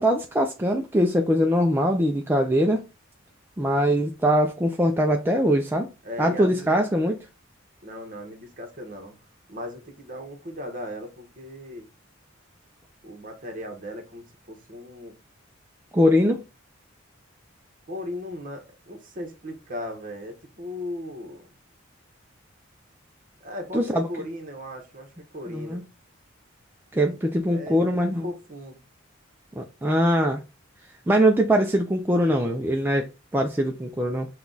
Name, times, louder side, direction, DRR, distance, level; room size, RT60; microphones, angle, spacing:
voice 1, 0.0-2.8 3.6-5.9 6.2-7.2 15.9-16.4 23.7-24.1 25.5-25.8 26.9-28.3 29.6-30.4 31.1-34.3, equal, 10° right, 0.4 m, -22 dB
voice 2, 6.0-6.8 7.8-9.2 9.5-11.9 13.0-15.2 17.9-21.5 23.4-25.9 27.0-28.8, left 1 dB, 40° right, 1.2 m, -37 dB
5.8 x 2.3 x 3.8 m
head